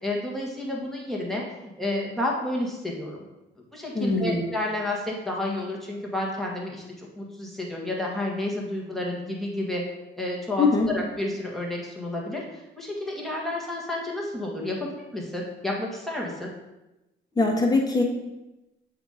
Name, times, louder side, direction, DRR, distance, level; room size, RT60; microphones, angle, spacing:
voice 1, 0.0-1.4 1.8-3.2 3.7-9.8 10.2-12.4 12.8-14.8 15.1-16.5, left 1 dB, ahead, -3 dB, 1.7 m, -30 dB
voice 2, 3.9-4.4 10.6-10.9 17.4-18.0, left 3 dB, 20° left, 0 dB, 1.4 m, -22 dB
7.5 x 2.9 x 5.0 m, 0.97 s
cardioid pair, 90°, 20 cm